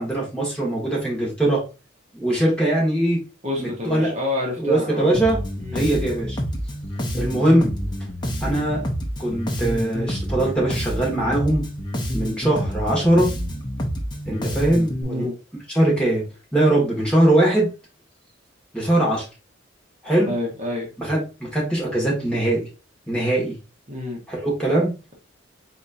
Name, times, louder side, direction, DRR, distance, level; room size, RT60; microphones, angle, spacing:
voice 1, 0.0-1.6 2.1-3.2 3.6-4.1 4.6-5.4 5.7-6.4 7.1-7.7 8.4-8.8 9.2-11.6 12.1-13.3 14.3-15.2 15.7-16.2 16.5-17.7 18.7-19.2 20.0-20.3 21.0-22.7 23.1-23.6 24.3-24.9, right 1 dB, 5° left, -4 dB, 1.6 m, -21 dB
voice 2, 3.4-5.1 5.6-5.9 15.0-15.3 20.3-20.9 23.9-24.2, left 2 dB, 35° right, -2 dB, 1.3 m, -28 dB
Bass guitar, 5.1-15.0, equal, 20° left, 0.7 m, -28 dB
4.2 x 4.2 x 2.5 m, 0.30 s
head